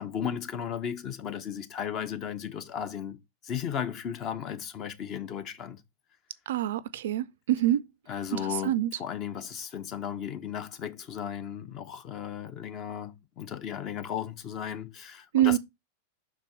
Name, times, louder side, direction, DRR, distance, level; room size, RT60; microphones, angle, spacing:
voice 1, 0.0-5.8 8.1-15.6, left 8 dB, 35° left, 0.8 m, -35 dB
voice 2, 6.5-7.8 8.3-8.9 15.3-15.6, right 13 dB, 60° right, 0.4 m, -26 dB
5.8 x 4.5 x 4.2 m
figure-of-eight pair, 90°, 0 cm